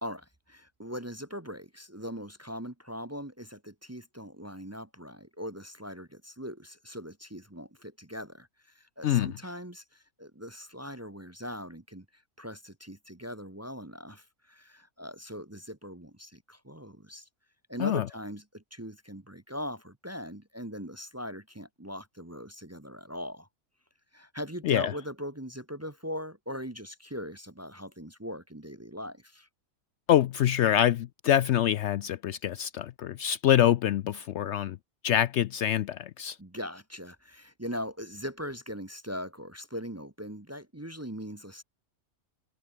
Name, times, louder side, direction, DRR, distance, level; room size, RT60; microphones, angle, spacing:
voice 1, 0.0-12.0 12.4-17.3 17.7-23.5 24.1-29.5 36.4-41.6, equal, 15° right, 0.9 m, -40 dB
voice 2, 9.0-9.3 17.8-18.0 24.6-24.9 30.1-34.8 35.0-36.4, left 11 dB, 65° left, 0.8 m, -25 dB
omnidirectional pair, 1.4 m